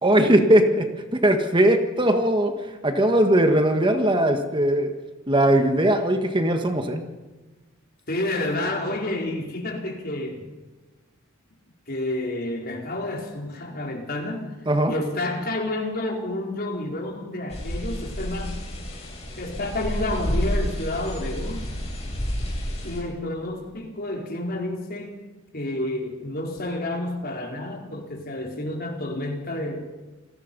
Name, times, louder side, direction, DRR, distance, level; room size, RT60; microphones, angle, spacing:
voice 1, 0.0-0.9 1.1-4.9 5.3-7.0 14.6-14.9, right 1 dB, 25° right, 5 dB, 1.7 m, -20 dB
voice 2, 8.1-10.5 11.9-14.5 14.9-18.6 19.4-21.7 22.8-25.2 25.5-29.9, left 1 dB, 50° left, 1 dB, 4.5 m, -30 dB
sound 1, 17.5-23.0, equal, 30° left, 7.6 m, -30 dB
28.5 x 19.0 x 5.5 m, 1.2 s
head